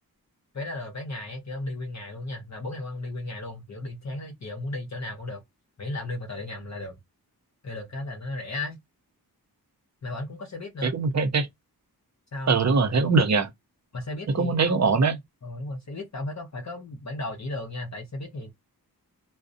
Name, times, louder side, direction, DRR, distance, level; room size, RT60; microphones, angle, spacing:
voice 1, 0.5-5.4 5.8-7.0 7.6-8.8 10.0-10.9 12.3-12.6 13.9-18.5, left 2 dB, 45° left, 0.7 m, -35 dB
voice 2, 10.8-11.5 12.5-13.5 14.3-15.1, right 4 dB, 45° right, 0.6 m, -22 dB
2.6 x 2.0 x 2.5 m
wide cardioid pair, 115°, 38 cm